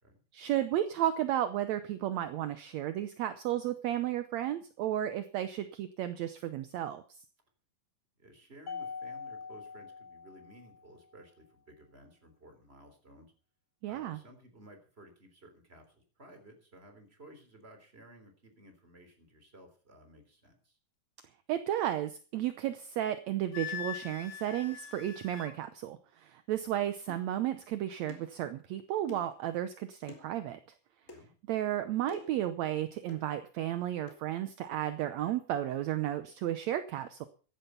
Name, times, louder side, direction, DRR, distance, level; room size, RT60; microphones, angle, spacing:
voice 1, 0.3-7.0 13.8-14.2 21.5-30.6 31.5-37.3, right 12 dB, 75° right, 11 dB, 1.7 m, -33 dB
voice 2, 8.2-13.3 13.9-20.8 26.6-26.7 31.0-31.3, right 1 dB, 15° right, 6 dB, 3.5 m, -56 dB
Mallet percussion, 8.7-11.1, left 5 dB, 50° left, 1.1 m, -43 dB
Wind instrument woodwind instrument, 23.5-25.5, left 10 dB, 80° left, 3.1 m, -42 dB
sound 1, 27.1-27.3 28.1-28.3 29.1-29.4 30.1-30.3 31.1-31.2 32.1-32.4 33.1-33.3 34.1-34.2, left 4 dB, 25° left, 2.9 m, -48 dB
15.0 x 11.5 x 5.7 m, 0.39 s
omnidirectional pair, 4.0 m